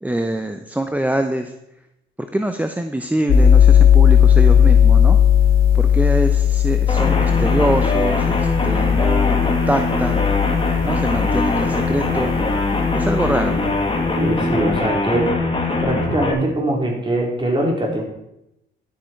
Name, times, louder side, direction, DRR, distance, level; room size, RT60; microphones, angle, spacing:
voice 1, 0.0-1.5 2.3-5.2 5.7-10.2 10.8-12.3 12.9-13.6, right 1 dB, 10° right, 7 dB, 0.8 m, -24 dB
sound 1, 3.3-13.9, left 8 dB, 85° left, 2.9 m, -16 dB
sound 2, 6.9-16.3, left 3 dB, 25° left, 2.2 m, -22 dB
voice 2, 14.2-15.3 15.8-18.0, right 1 dB, 25° right, -1 dB, 4.1 m, -22 dB
12.5 x 8.8 x 4.6 m, 0.85 s
cardioid pair, 90°, 20 cm